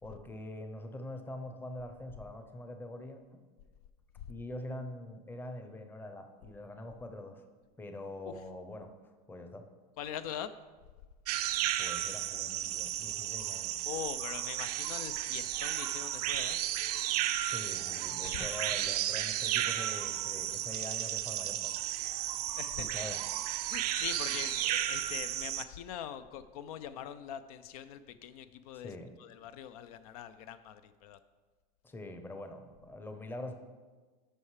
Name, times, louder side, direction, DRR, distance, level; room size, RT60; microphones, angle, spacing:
voice 1, 0.0-3.4 4.3-7.4 7.8-8.9 9.3-9.7 11.6-13.7 17.4-21.7 22.8-23.2 28.8-29.1 31.8-33.5, left 1 dB, 10° left, 6 dB, 0.7 m, -44 dB
voice 2, 10.0-10.5 13.9-16.6 18.2-18.5 22.6-23.0 23.7-31.2, left 10 dB, 70° left, 12 dB, 0.5 m, -42 dB
sound 1, 11.3-25.6, right 13 dB, 80° right, 0.5 m, -34 dB
13.0 x 5.6 x 3.2 m, 1.4 s
supercardioid pair, 125°, 20 cm